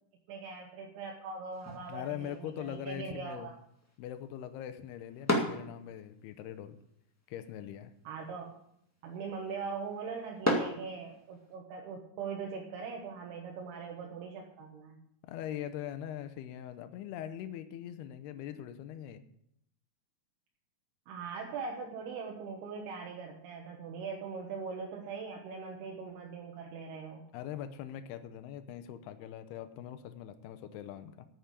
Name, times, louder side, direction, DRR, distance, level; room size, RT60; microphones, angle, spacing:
voice 1, 0.3-3.5 8.0-8.5 9.0-15.0 21.1-27.2, right 5 dB, 80° right, 0 dB, 3.3 m, -41 dB
sound 1, 1.5-11.6, equal, 15° left, 0.5 m, -39 dB
voice 2, 1.9-3.5 4.0-6.8 7.3-7.9 15.2-19.2 27.3-31.3, left 10 dB, 85° left, 10 dB, 2.8 m, -42 dB
9.4 x 8.1 x 8.3 m, 0.75 s
omnidirectional pair, 4.5 m